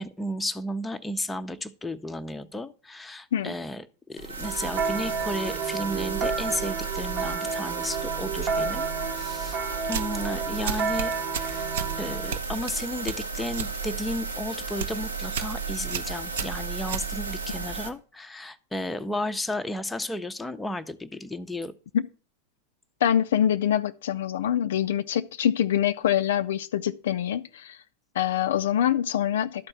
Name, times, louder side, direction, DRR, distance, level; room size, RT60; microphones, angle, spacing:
voice 1, 0.0-8.9 9.2-9.6 9.9-11.7 12.0-21.7, left 1 dB, 5° left, 0.6 m, -33 dB
sound 1, 4.2-17.9, right 4 dB, 80° right, 1.1 m, -34 dB
sound 2, 4.4-12.4, right 6 dB, 35° right, 0.9 m, -31 dB
sound 3, 9.8-10.2 10.6-11.9 12.3-13.8 14.1-14.4 14.7-15.0 15.3-15.6 15.9-17.5, right 6 dB, 60° right, 0.7 m, -33 dB
voice 2, 23.0-27.8 28.2-29.7, left 10 dB, 60° left, 0.4 m, -25 dB
12.0 x 4.4 x 7.2 m
figure-of-eight pair, 90°, 0 cm